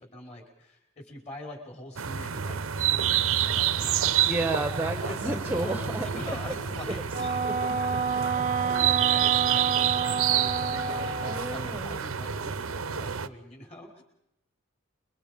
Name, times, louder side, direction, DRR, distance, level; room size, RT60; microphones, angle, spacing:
voice 1, 0.0-7.4 7.7-7.8 8.7-14.0, left 1 dB, 30° left, 2 dB, 5.1 m, -44 dB
sound 1, 2.0-13.3, right 9 dB, 70° right, 0.8 m, -28 dB
voice 2, 4.2-6.4 7.4-7.5 11.2-12.0, right 2 dB, 10° right, 7 dB, 1.1 m, -31 dB
sound 2, 4.9-12.0, equal, 60° left, 2.6 m, -50 dB
Wind instrument woodwind instrument, 7.1-11.6, right 5 dB, 35° right, 0.9 m, -29 dB
28.0 x 23.0 x 5.3 m, 0.82 s
head